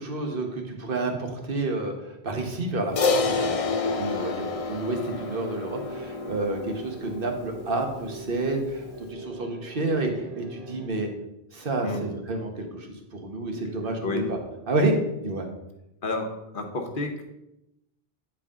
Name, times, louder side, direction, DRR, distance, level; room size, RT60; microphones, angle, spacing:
voice 1, 0.0-11.1 11.5-14.2 14.7-14.9 15.2-15.5, right 2 dB, 60° right, 3 dB, 1.3 m, -29 dB
Crash cymbal, 3.0-7.5, left 3 dB, 45° left, 0.6 m, -28 dB
sound 1, 5.2-10.9, right 2 dB, 85° right, 1.2 m, -42 dB
voice 2, 16.0-17.2, left 2 dB, 60° left, 3 dB, 1.2 m, -30 dB
8.9 x 4.8 x 3.6 m, 0.88 s
omnidirectional pair, 1.0 m